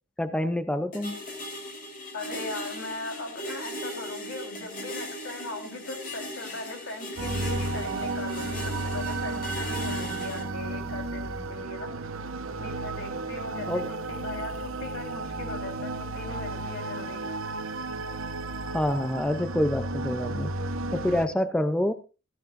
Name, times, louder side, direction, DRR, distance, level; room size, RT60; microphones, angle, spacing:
voice 1, 0.2-1.2 13.6-13.9 18.7-20.5 20.9-21.9, left 1 dB, 5° left, 9 dB, 0.5 m, -27 dB
sound 1, 0.9-10.4, left 1 dB, 40° left, 3.9 m, -38 dB
voice 2, 2.1-11.9 12.6-17.2, left 2 dB, 65° left, 2 dB, 4.0 m, -39 dB
sound 2, 7.2-21.3, right 2 dB, 70° right, 1.1 m, -33 dB
16.0 x 13.5 x 2.6 m, 0.31 s
head